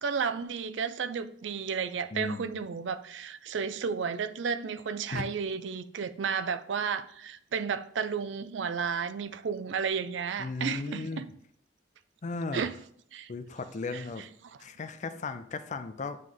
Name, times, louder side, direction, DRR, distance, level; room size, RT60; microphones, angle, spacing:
voice 1, 0.0-11.3 12.5-12.7 13.1-13.3 13.9-14.0, right 6 dB, 80° right, 0.4 m, -32 dB
voice 2, 2.1-2.6 5.1-5.2 10.4-11.2 12.2-12.7 13.3-14.2 14.6-16.2, left 3 dB, 40° left, 0.5 m, -36 dB
9.2 x 3.2 x 3.8 m
head